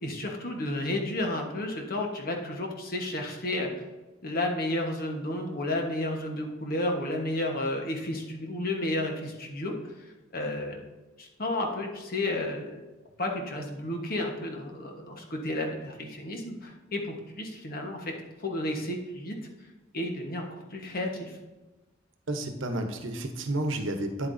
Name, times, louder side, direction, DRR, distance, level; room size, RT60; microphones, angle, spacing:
voice 1, 0.0-3.7 4.2-9.9 10.3-10.8 11.2-12.8 13.2-18.1 18.4-19.4 19.9-21.4, left 1 dB, 50° left, 2 dB, 1.2 m, -32 dB
voice 2, 22.3-24.3, right 1 dB, 85° right, 6 dB, 1.0 m, -31 dB
9.5 x 8.4 x 2.7 m, 1.1 s
head